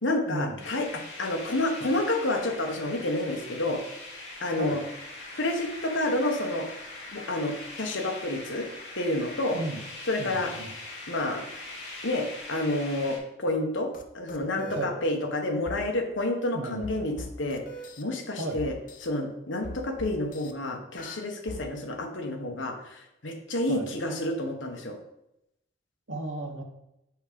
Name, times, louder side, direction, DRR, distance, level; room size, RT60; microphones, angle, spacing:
voice 1, 0.0-3.8 4.4-4.8 5.3-6.7 7.1-8.7 8.9-9.6 10.1-10.5 11.1-11.4 12.0-13.9 14.1-17.6 18.0-18.7 19.0-25.0, left 1 dB, 80° left, 3 dB, 1.3 m, -29 dB
sound 1, 0.6-13.2, left 2 dB, 65° left, 3.1 m, -42 dB
voice 2, 10.2-10.7 14.7-15.0 16.5-16.9 18.4-18.6 23.7-23.9 26.1-26.6, right 2 dB, 90° right, 4 dB, 1.2 m, -34 dB
sound 2, 13.9-14.0 14.3-14.8 15.7-15.8 16.8-18.0 18.6-19.1 19.6-20.5 21.0-21.6, left 2 dB, 45° left, 0.6 m, -40 dB
6.2 x 5.1 x 5.2 m, 0.85 s
head